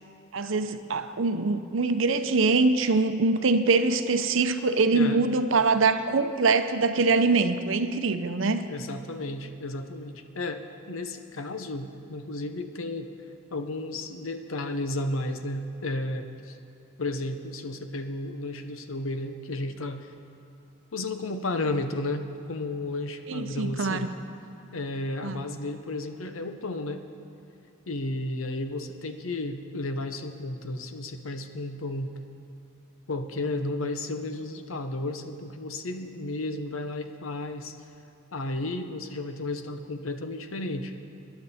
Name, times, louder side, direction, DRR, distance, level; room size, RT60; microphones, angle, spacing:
voice 1, 0.3-8.6 23.3-24.1 25.2-25.4, right 3 dB, 65° right, 9 dB, 0.7 m, -23 dB
voice 2, 4.9-5.3 8.7-13.1 13.5-16.6 17.0-20.1 20.9-24.1 24.7-27.0 27.9-32.1 33.1-37.7 38.3-40.9, left 2 dB, 80° left, 7 dB, 0.9 m, -33 dB
21.5 x 10.5 x 4.3 m, 2.9 s
head